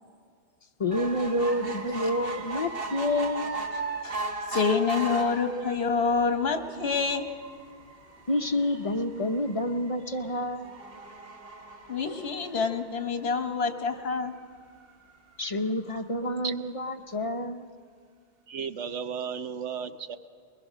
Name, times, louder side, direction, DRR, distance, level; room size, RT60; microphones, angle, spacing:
voice 1, 0.8-3.6 8.3-10.7 15.4-17.7, left 1 dB, 35° left, 7 dB, 0.6 m, -28 dB
sound 1, 0.9-13.5 14.1-14.2 14.5-14.6 14.8-14.9, right 3 dB, 60° right, 1.5 m, -38 dB
voice 2, 4.5-7.3 11.9-14.3, left 5 dB, 65° left, 7 dB, 1.4 m, -27 dB
voice 3, 18.5-20.2, right 7 dB, 90° right, 10 dB, 1.1 m, -34 dB
22.0 x 20.5 x 6.3 m, 2.2 s
omnidirectional pair, 1.2 m